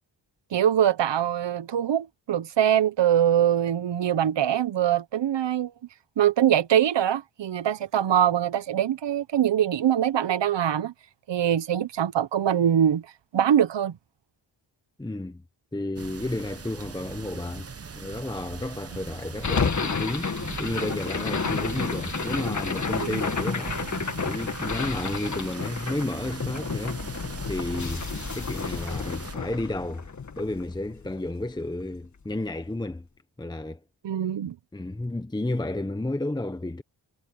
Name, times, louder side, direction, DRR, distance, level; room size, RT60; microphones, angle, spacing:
voice 1, 0.5-5.7 6.2-10.9 11.3-13.1 13.3-14.0 23.0-23.2 34.0-34.6, right 10 dB, 70° right, 1.0 m, -23 dB
voice 2, 15.0-15.4 15.7-23.9 24.2-27.0 27.5-30.1 30.4-33.1 33.4-33.8 34.7-36.8, left 2 dB, 10° left, 1.0 m, -32 dB
sound 1, 16.0-29.4, right 5 dB, 35° right, 1.1 m, -39 dB
sound 2, 19.4-31.6, left 5 dB, 40° left, 1.9 m, -31 dB
wide cardioid pair, 115°, 44 cm